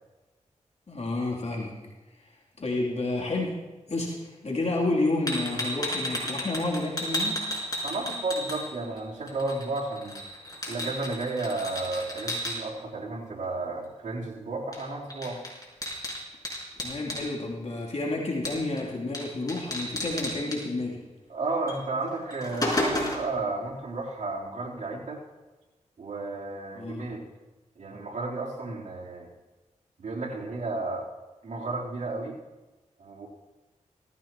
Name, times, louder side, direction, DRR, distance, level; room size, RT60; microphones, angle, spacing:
voice 1, 0.9-1.7 2.6-3.6 3.9-7.4 16.8-21.0 26.7-27.1, left 2 dB, 55° left, -3 dB, 3.1 m, -30 dB
sound 1, 5.3-9.0 9.3-12.6 14.7-14.8 15.1-17.3 18.5-18.8 19.1-19.2 19.5-20.6 21.7-21.8 22.2-23.3, left 1 dB, 30° left, 5.0 m, -32 dB
voice 2, 7.8-10.2 10.7-15.4 21.3-25.2 26.0-27.3 27.8-29.3 30.0-31.1 31.4-32.4 33.0-33.3, right 3 dB, 80° right, -5 dB, 3.6 m, -33 dB
18.5 x 15.5 x 3.0 m, 1.2 s
cardioid pair, 50°, 13 cm